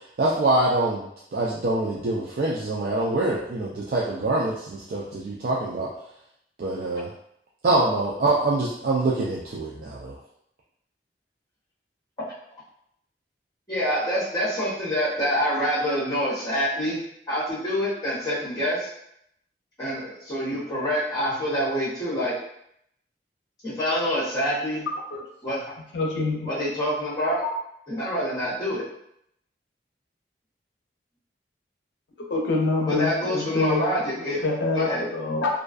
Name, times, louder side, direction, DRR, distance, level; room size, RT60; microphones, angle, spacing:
voice 1, 0.2-1.0 1.3-5.9 6.6-7.1 7.6-10.1, right 2 dB, 55° right, -5 dB, 0.3 m, -24 dB
voice 2, 13.7-17.0 17.3-18.9 19.8-22.3 23.6-24.9 25.4-25.7 26.5-27.4 27.9-28.8 32.9-34.4 34.7-35.0, equal, 20° left, -9 dB, 0.9 m, -26 dB
voice 3, 25.9-26.5 27.4-27.5 32.2-33.8 34.4-35.5, left 2 dB, 90° left, 0 dB, 0.6 m, -26 dB
2.5 x 2.2 x 2.3 m, 0.73 s
head